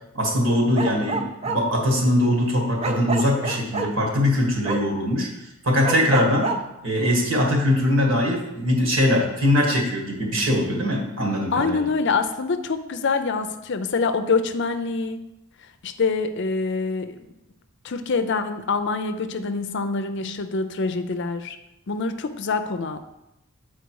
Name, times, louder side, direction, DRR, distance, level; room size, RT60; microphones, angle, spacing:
voice 1, 0.1-6.5 6.8-11.9, left 1 dB, 65° right, 0 dB, 1.8 m, -22 dB
Bark, 0.8-1.6 2.8-3.9 4.7-4.8 5.8-6.6, right 3 dB, 30° right, 0.6 m, -27 dB
voice 2, 11.5-15.2 15.8-17.2 17.8-21.6 21.9-23.0, left 4 dB, 55° left, 9 dB, 0.5 m, -25 dB
8.1 x 4.6 x 4.7 m, 0.89 s
head